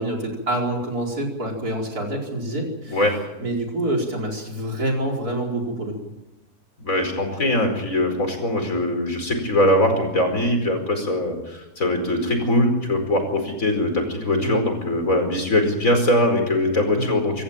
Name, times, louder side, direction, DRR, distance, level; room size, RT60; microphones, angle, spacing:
voice 1, 0.0-3.0 3.4-5.9 14.4-14.6 16.9-17.2, right 1 dB, 80° right, 0 dB, 5.2 m, -26 dB
voice 2, 6.8-17.4, left 1 dB, 60° left, 5 dB, 5.2 m, -21 dB
26.0 x 14.0 x 8.9 m, 0.97 s
omnidirectional pair, 1.6 m